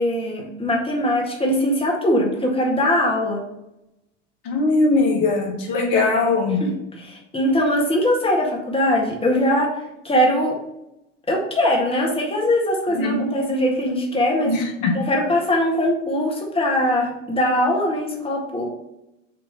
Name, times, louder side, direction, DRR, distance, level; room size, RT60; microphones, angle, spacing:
voice 1, 0.0-3.4 6.6-6.7 7.0-10.6 11.3-14.5 14.9-18.7, left 1 dB, 15° left, -1 dB, 1.7 m, -21 dB
voice 2, 4.5-6.6 13.0-13.2 14.5-14.9, left 3 dB, 60° left, 1 dB, 1.7 m, -20 dB
6.5 x 3.5 x 5.3 m, 0.88 s
hypercardioid pair, 80°, 38 cm